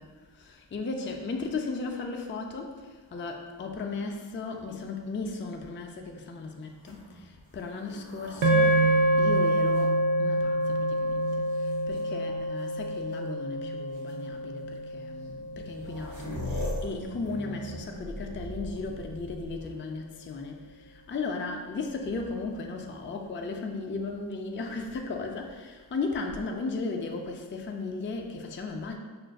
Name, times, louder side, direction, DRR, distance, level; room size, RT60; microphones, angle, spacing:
voice 1, 0.3-29.0, left 3 dB, 30° left, 3 dB, 0.3 m, -36 dB
sound 1, 6.7-10.6 11.3-12.0 13.1-13.2 13.9-14.1 15.2-15.3 15.5-20.0 21.9-22.6, left 1 dB, 45° right, 1.3 m, -40 dB
sound 2, 8.4-16.8, right 1 dB, 80° right, 0.6 m, -27 dB
6.1 x 2.5 x 2.3 m, 1.5 s
wide cardioid pair, 55°, 46 cm